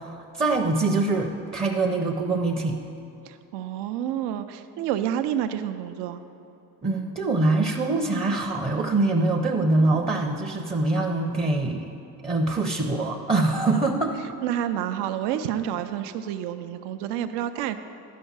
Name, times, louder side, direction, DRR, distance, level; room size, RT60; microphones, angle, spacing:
voice 1, 0.0-2.8 6.8-11.9 12.2-14.1, right 2 dB, 15° right, 1 dB, 0.5 m, -24 dB
voice 2, 3.3-6.2 14.4-17.8, right 10 dB, 90° right, 9 dB, 0.6 m, -29 dB
11.0 x 5.4 x 7.2 m, 2.8 s
cardioid pair, 135°, 40 cm